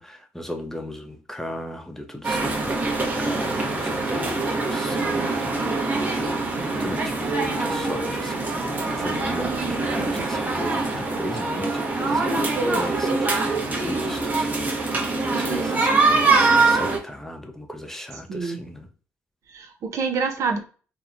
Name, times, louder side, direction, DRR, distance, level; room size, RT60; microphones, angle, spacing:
voice 1, 0.0-5.5 6.0-18.9, left 1 dB, 5° left, 0.5 m, -36 dB
sound 1, 2.2-17.0, right 3 dB, 30° right, 0.8 m, -24 dB
voice 2, 15.3-15.8 18.3-18.6 19.5-20.6, right 5 dB, 60° right, 0.5 m, -27 dB
2.8 x 2.1 x 2.4 m
supercardioid pair, 75°, 6 cm